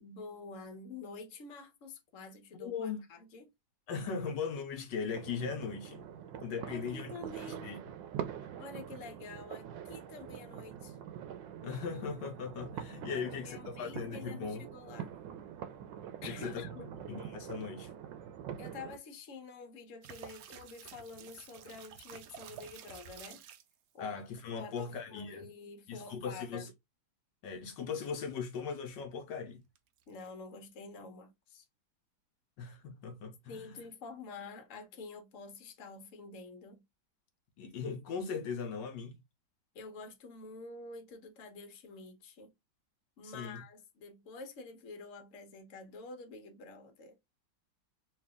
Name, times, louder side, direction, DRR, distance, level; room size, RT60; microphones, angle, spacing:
voice 1, 0.0-3.5 6.7-7.7 8.6-11.0 13.1-15.1 16.2-17.0 18.6-23.4 23.9-24.1 24.5-26.6 30.1-31.7 33.5-36.8 39.7-42.5 43.2-47.2, left 3 dB, 50° left, 1.1 m, -48 dB
voice 2, 2.6-3.0 3.9-6.0 6.4-7.1 7.6-7.8 8.4-8.5 11.6-14.6 16.3-16.6 17.1-17.9 24.0-25.5 25.9-26.7 27.4-29.6 32.6-33.7 37.6-39.2 43.2-43.6, left 5 dB, 75° left, 1.3 m, -39 dB
sound 1, 5.1-19.0, right 9 dB, 85° right, 1.3 m, -45 dB
sound 2, 20.0-23.7 29.8-30.3, right 8 dB, 70° right, 0.9 m, -51 dB
3.2 x 2.9 x 3.4 m
omnidirectional pair, 2.0 m